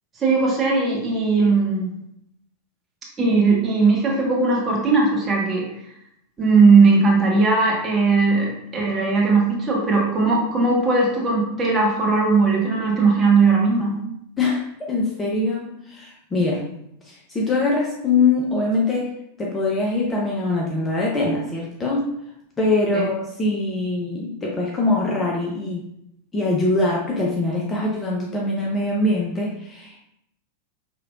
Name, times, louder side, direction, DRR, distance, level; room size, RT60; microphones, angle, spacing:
voice 1, 0.2-1.9 3.2-5.7 6.4-14.0 22.9-23.1, right 4 dB, 20° right, -3 dB, 1.3 m, -18 dB
voice 2, 14.9-16.7 17.0-19.1 19.4-22.1 22.6-25.9 26.3-30.0, left 2 dB, 15° left, -3 dB, 0.6 m, -23 dB
5.1 x 3.2 x 2.4 m, 0.76 s
figure-of-eight pair, 90°, 0 cm